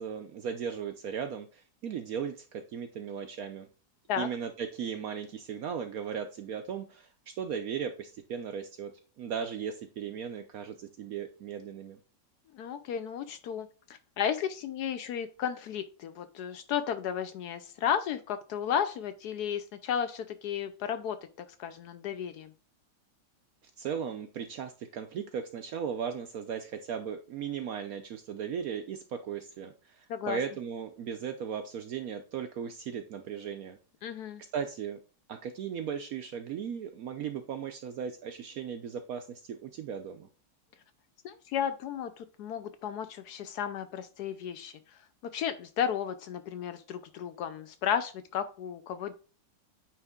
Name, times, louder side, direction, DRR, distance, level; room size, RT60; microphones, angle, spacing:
voice 1, 0.0-3.7 4.2-8.9 9.2-12.0 23.8-33.8 34.5-35.0 35.3-40.3, right 7 dB, 70° right, 8 dB, 0.9 m, -37 dB
voice 2, 12.5-13.7 14.2-21.2 21.6-22.5 30.1-30.4 34.0-34.4 41.2-45.0 45.3-49.1, left 8 dB, 70° left, 10 dB, 1.0 m, -33 dB
8.9 x 3.3 x 3.6 m, 0.37 s
omnidirectional pair, 2.0 m